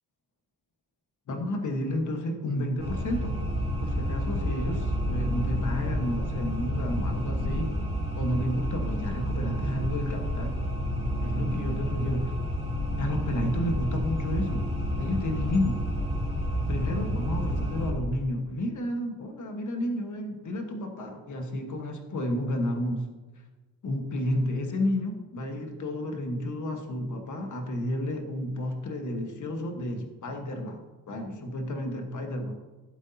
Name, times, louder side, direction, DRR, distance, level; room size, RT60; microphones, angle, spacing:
voice 1, 1.3-3.4 3.8-7.8 8.1-10.6 11.2-12.3 13.0-14.7 15.0-15.8 16.7-23.1 23.8-32.6, left 1 dB, 50° left, 3 dB, 1.5 m, -31 dB
sound 1, 2.8-17.9, equal, 15° right, 3.3 m, -30 dB
16.0 x 8.1 x 2.8 m, 1.2 s
wide cardioid pair, 160°, 37 cm